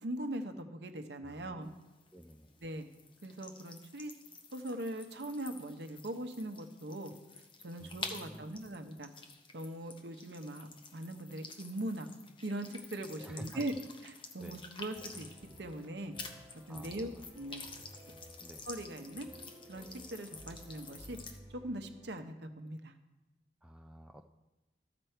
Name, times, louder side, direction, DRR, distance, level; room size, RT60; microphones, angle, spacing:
voice 1, 0.0-1.7 2.6-2.8 3.2-4.1 4.5-7.1 7.6-9.1 9.5-12.1 12.4-13.7 14.0-15.3 15.6-16.2 16.7-17.6 18.7-19.3 19.7-21.2 21.5-22.9, right 1 dB, 75° right, 6 dB, 0.8 m, -41 dB
voice 2, 1.2-1.6 2.1-2.5 7.8-8.5 13.2-13.6 14.4-14.7 16.7-17.2 18.4-18.6 23.6-24.3, equal, 5° right, 4 dB, 0.4 m, -51 dB
sound 1, 1.6-15.9 16.1-21.4, left 4 dB, 30° left, 0.7 m, -50 dB
sound 2, 14.9-22.1, equal, 30° right, 1.2 m, -55 dB
13.0 x 6.0 x 4.5 m, 1.0 s
head